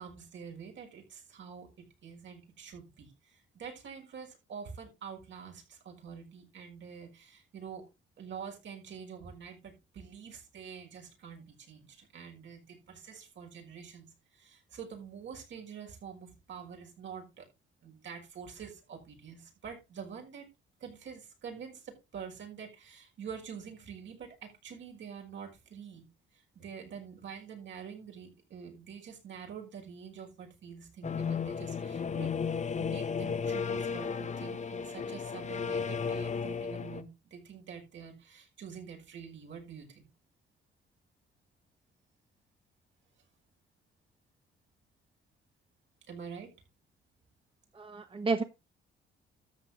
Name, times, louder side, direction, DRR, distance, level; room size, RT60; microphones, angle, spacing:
voice 1, 0.0-7.9 8.2-17.5 17.8-20.5 20.8-26.1 26.3-32.3 32.8-40.1 46.1-46.5, right 7 dB, 70° right, 2 dB, 6.0 m, -46 dB
sound 1, 31.0-37.0, left 6 dB, 35° left, 1.2 m, -34 dB
voice 2, 47.7-48.4, right 3 dB, 25° right, 8 dB, 1.3 m, -31 dB
13.0 x 7.7 x 3.8 m, 0.26 s
cardioid pair, 90°, 20 cm